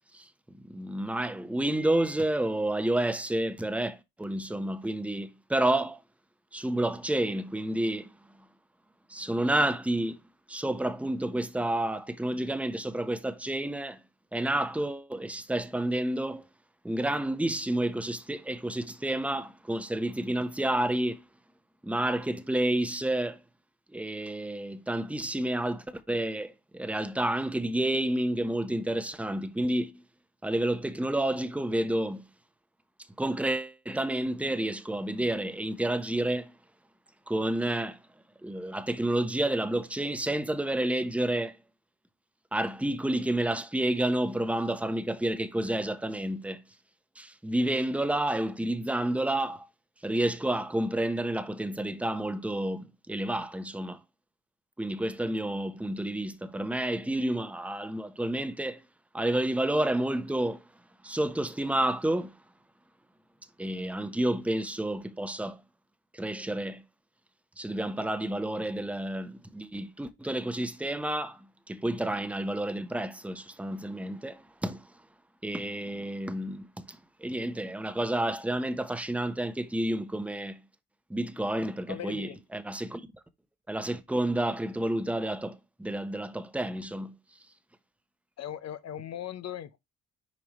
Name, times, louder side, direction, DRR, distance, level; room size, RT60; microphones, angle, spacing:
voice 1, 0.7-6.0 6.5-8.1 9.1-10.2 10.5-14.0 14.3-16.5 16.8-21.2 21.8-23.4 23.9-30.0 30.4-32.3 33.2-36.5 37.3-38.0 38.4-41.6 42.5-46.6 47.2-49.6 50.0-54.0 54.8-58.8 59.1-60.6 61.0-62.3 63.6-65.6 66.1-66.8 67.6-74.8 75.4-80.6 81.1-83.0 83.7-87.1, right 1 dB, 5° right, 1.0 m, -30 dB
voice 2, 81.9-82.4 88.4-89.8, left 10 dB, 60° left, 0.9 m, -38 dB
7.3 x 4.9 x 3.1 m
cardioid pair, 90°, 30 cm